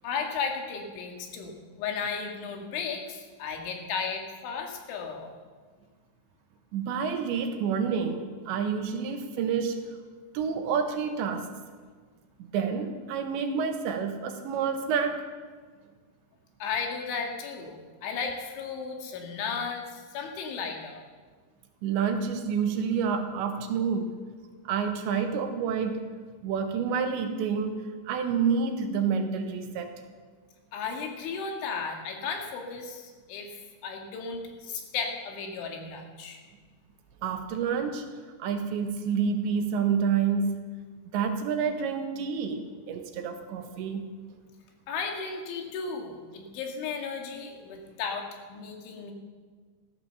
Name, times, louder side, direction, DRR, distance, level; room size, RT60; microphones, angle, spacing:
voice 1, 0.0-5.3 16.6-21.0 30.7-36.4 44.9-49.1, left 5 dB, 75° left, 2 dB, 4.2 m, -35 dB
voice 2, 6.7-10.0 10.3-11.5 12.5-15.3 21.8-24.2 24.7-26.1 26.4-29.9 37.2-38.1 38.4-40.5 41.1-44.1, right 6 dB, 75° right, 6 dB, 3.3 m, -28 dB
14.5 x 14.5 x 6.9 m, 1.5 s
omnidirectional pair, 5.5 m